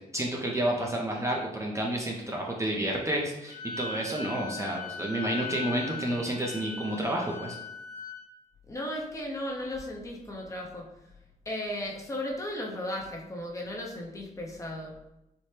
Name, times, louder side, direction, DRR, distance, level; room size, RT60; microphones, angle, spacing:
voice 1, 0.1-7.6, right 1 dB, 20° right, -1 dB, 0.5 m, -30 dB
Wind instrument woodwind instrument, 3.5-8.2, left 5 dB, 55° left, 0.4 m, -39 dB
voice 2, 8.7-10.9 11.5-15.0, left 1 dB, 20° left, -1 dB, 0.7 m, -35 dB
4.2 x 2.1 x 3.2 m, 0.91 s
cardioid pair, 110°, 16 cm